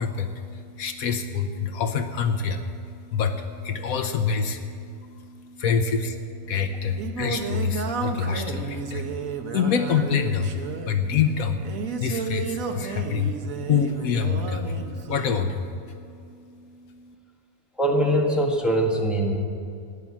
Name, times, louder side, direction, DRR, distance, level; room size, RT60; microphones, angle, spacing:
voice 1, 0.0-17.1, left 6 dB, 70° left, 8 dB, 1.2 m, -27 dB
Singing, 6.4-15.5, right 5 dB, 65° right, 1.4 m, -32 dB
voice 2, 17.8-19.4, right 1 dB, ahead, -1 dB, 1.5 m, -22 dB
13.5 x 10.5 x 7.3 m, 2.5 s
omnidirectional pair, 1.6 m